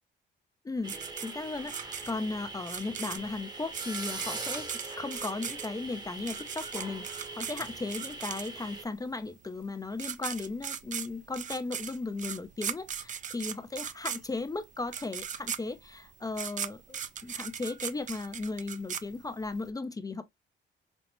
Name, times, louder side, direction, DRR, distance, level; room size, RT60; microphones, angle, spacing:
voice 1, 0.6-0.9 1.2-1.8 2.1-4.7 5.0-20.2, left 3 dB, 20° left, 0.4 m, -36 dB
sound 1, 0.8-8.8, right 2 dB, 20° right, 0.8 m, -42 dB
sound 2, 0.9-8.8 9.6-9.7 9.9-19.6, right 8 dB, 40° right, 0.4 m, -38 dB
5.2 x 2.0 x 3.0 m
cardioid pair, 90°, 20 cm